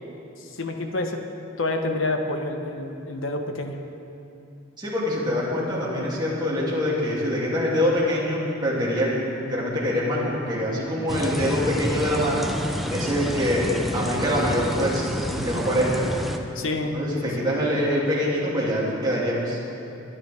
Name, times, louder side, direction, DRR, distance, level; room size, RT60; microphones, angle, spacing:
voice 1, 0.4-1.2 1.6-3.8 16.5-17.0 17.4-17.5, left 2 dB, 70° left, 4 dB, 1.1 m, -28 dB
voice 2, 4.8-12.5 12.9-16.1 16.9-19.6, equal, 20° right, -6 dB, 2.8 m, -24 dB
sound 1, 11.1-16.4, equal, ahead, 0.7 m, -29 dB
23.5 x 10.0 x 3.5 m, 2.8 s
head